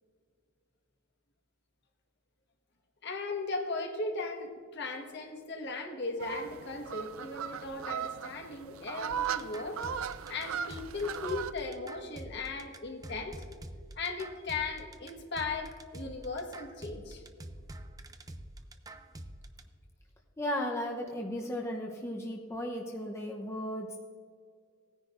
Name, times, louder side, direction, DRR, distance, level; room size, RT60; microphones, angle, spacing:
voice 1, 3.0-9.8 10.3-13.4 13.9-17.2, left 3 dB, 55° left, 3 dB, 1.5 m, -37 dB
sound 1, 6.2-11.5, right 8 dB, 90° right, 0.4 m, -37 dB
sound 2, 9.1-19.6, right 1 dB, 20° right, 0.5 m, -46 dB
voice 2, 20.4-24.0, equal, 15° left, -1 dB, 0.8 m, -35 dB
18.0 x 10.0 x 2.6 m, 2.1 s
head